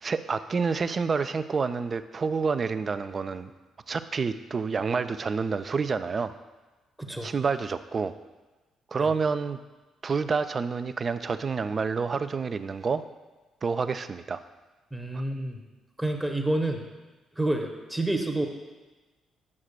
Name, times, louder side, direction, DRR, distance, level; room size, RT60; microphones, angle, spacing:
voice 1, 0.0-3.5 3.9-6.3 7.2-8.1 8.9-9.6 10.0-13.1 13.6-14.4 15.1-15.2, right 5 dB, 40° right, 12 dB, 0.3 m, -28 dB
voice 2, 7.0-7.3 9.0-9.1 14.9-15.6 16.0-16.8 17.4-18.5, right 1 dB, 5° right, 3 dB, 0.8 m, -28 dB
9.6 x 6.4 x 2.2 m, 1.2 s
figure-of-eight pair, 40°, 0 cm